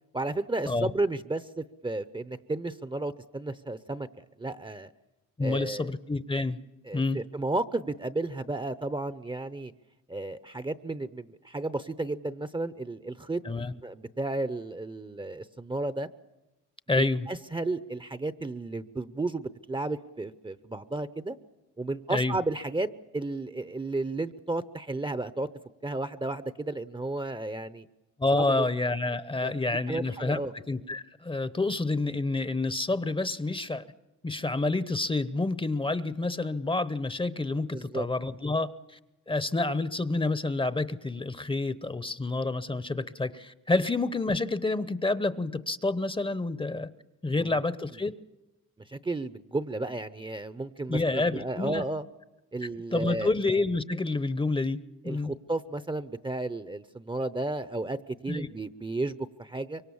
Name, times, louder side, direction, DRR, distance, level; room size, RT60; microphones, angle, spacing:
voice 1, 0.1-4.9 5.4-5.9 6.9-9.7 10.1-13.4 13.8-16.1 16.9-21.4 21.8-25.5 25.8-27.9 28.3-28.7 29.4-29.5 29.9-30.5 37.7-38.1 47.4-47.5 48.8-52.1 52.5-53.3 55.0-59.8, right 2 dB, 15° right, 13 dB, 0.7 m, -33 dB
voice 2, 5.4-6.6 6.9-7.2 13.4-13.7 16.9-17.3 22.1-22.3 28.2-33.8 34.2-39.0 39.3-46.9 47.2-48.1 50.9-51.8 52.9-55.3 58.3-58.5, left 2 dB, 15° left, 15 dB, 0.8 m, -28 dB
25.0 x 23.5 x 7.2 m, 1.0 s
cardioid pair, 90°, 30 cm